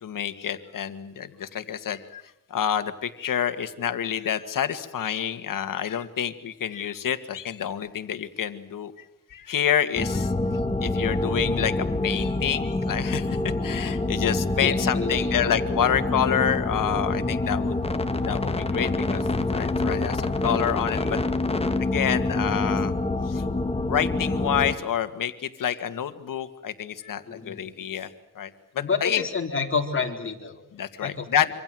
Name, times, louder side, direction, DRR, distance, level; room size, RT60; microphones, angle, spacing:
voice 1, 0.0-2.2 2.5-8.9 9.3-10.3 10.8-13.4 13.6-17.7 18.3-19.2 19.5-21.2 21.8-22.9 23.3-23.4 23.9-28.1 28.4-28.5 29.0-29.2 30.8-31.5, left 9 dB, 85° left, 10 dB, 2.0 m, -28 dB
sound 1, 10.0-24.8, left 2 dB, 20° left, 1.9 m, -26 dB
voice 2, 14.6-15.2 27.2-27.7 28.8-30.6 31.0-31.3, left 5 dB, 40° left, 3 dB, 4.1 m, -29 dB
26.5 x 26.0 x 7.8 m, 0.82 s
wide cardioid pair, 130°, 32 cm